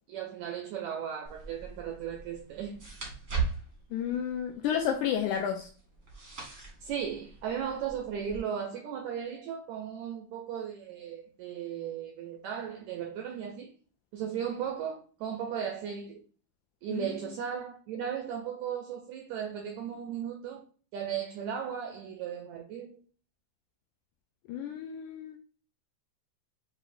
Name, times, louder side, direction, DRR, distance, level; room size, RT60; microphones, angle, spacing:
voice 1, 0.1-2.8 6.8-13.7 14.1-16.2 16.8-20.6 20.9-23.0, right 8 dB, 85° right, 1.6 m, -36 dB
sound 1, 1.2-8.4, right 5 dB, 50° right, 0.9 m, -40 dB
voice 2, 3.9-5.7 16.9-17.1 24.5-25.4, left 9 dB, 90° left, 1.7 m, -31 dB
7.7 x 2.6 x 2.5 m
omnidirectional pair, 4.0 m